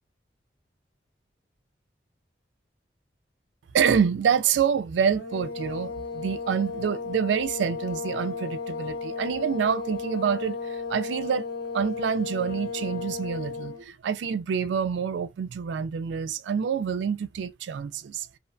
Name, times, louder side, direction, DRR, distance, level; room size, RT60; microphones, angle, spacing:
voice 1, 3.7-11.5 11.7-18.3, right 7 dB, 90° right, 0.3 m, -27 dB
sound 1, 5.1-13.8, left 4 dB, 65° left, 0.8 m, -34 dB
2.6 x 2.1 x 2.5 m
head